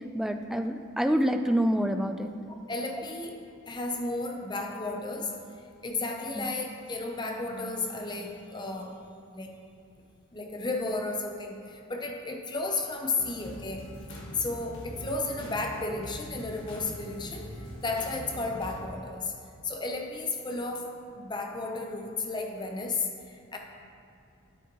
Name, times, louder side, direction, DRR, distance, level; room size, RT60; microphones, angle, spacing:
voice 1, 0.1-2.4 6.4-6.5, equal, ahead, 6 dB, 0.3 m, -27 dB
voice 2, 2.5-3.4 3.7-5.4 5.8-9.0 9.3-9.6 10.3-13.9 14.3-17.6 17.8-19.3 19.6-23.6, left 3 dB, 20° left, 3 dB, 0.7 m, -33 dB
sound 1, 13.2-18.8, equal, 60° left, 1.6 m, -42 dB
10.0 x 8.9 x 3.0 m, 2.7 s
head